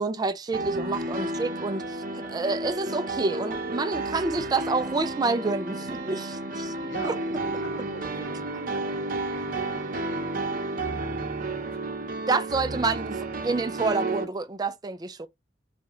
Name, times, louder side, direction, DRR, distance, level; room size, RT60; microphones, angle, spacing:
voice 1, 0.0-6.7 7.0-7.1 12.3-13.2 13.4-15.3, right 3 dB, 20° right, 0.4 m, -28 dB
sound 1, 0.5-14.2, right 2 dB, 50° right, 0.8 m, -32 dB
voice 2, 6.3-10.6 11.4-12.0, left 2 dB, 85° left, 1.5 m, -46 dB
4.2 x 2.8 x 3.5 m
head